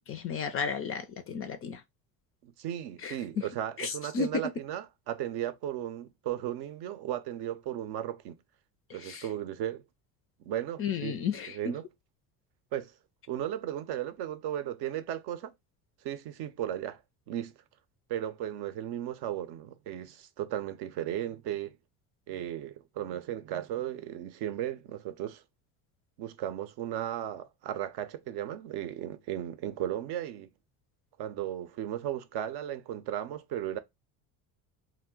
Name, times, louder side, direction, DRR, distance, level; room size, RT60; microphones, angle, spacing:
voice 1, 0.1-1.8 3.0-3.5 3.8-4.3 8.9-9.3 10.8-11.7, left 6 dB, 35° left, 0.4 m, -34 dB
voice 2, 2.4-8.4 8.9-9.8 10.4-11.2 11.5-11.9 12.7-12.9 13.3-15.5 16.0-17.0 17.3-17.5 18.1-21.8 22.3-25.4 26.2-30.5 31.2-33.8, right 11 dB, 60° right, 0.6 m, -35 dB
2.4 x 2.1 x 3.6 m
hypercardioid pair, 75°, 44 cm